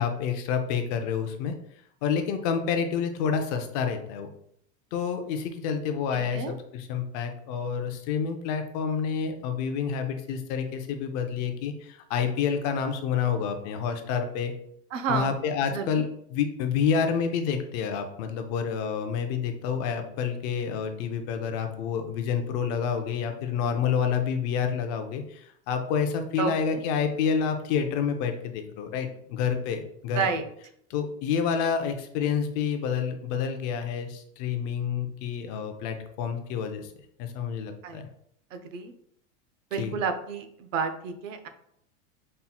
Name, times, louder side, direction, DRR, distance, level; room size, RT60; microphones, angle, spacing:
voice 1, 0.0-1.5 2.0-4.3 4.9-6.5 6.7-14.5 15.1-30.2 30.9-36.9 37.2-38.1 39.8-40.0, left 7 dB, 35° left, 6 dB, 0.4 m, -28 dB
voice 2, 6.1-6.6 14.9-15.3 15.7-16.0 26.4-26.9 30.1-30.4 37.8-38.0 38.5-38.9 39.7-41.5, right 5 dB, 85° right, 8 dB, 0.8 m, -30 dB
5.5 x 4.2 x 2.2 m, 0.70 s
supercardioid pair, 160°, 38 cm